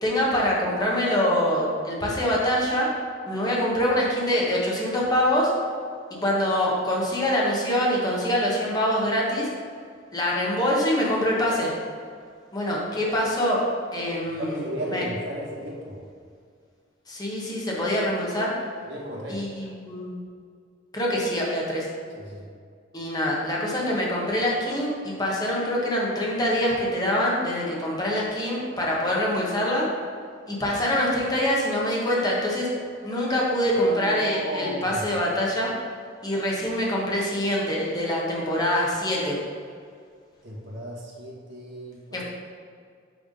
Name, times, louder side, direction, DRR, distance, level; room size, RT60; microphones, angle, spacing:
voice 1, 0.0-2.9 3.3-5.5 6.1-9.5 10.1-11.7 12.5-13.6 13.9-15.0 17.1-18.5 19.3-20.2 20.9-21.9 22.9-29.9 30.5-32.7 33.0-35.7 36.2-39.4 42.1-42.2, equal, 20° left, -4 dB, 1.2 m, -25 dB
voice 2, 14.4-16.0 18.8-19.7 22.1-22.4 33.9-35.0 40.4-42.2, equal, 65° right, -3 dB, 1.6 m, -34 dB
6.2 x 3.5 x 5.3 m, 2.2 s
head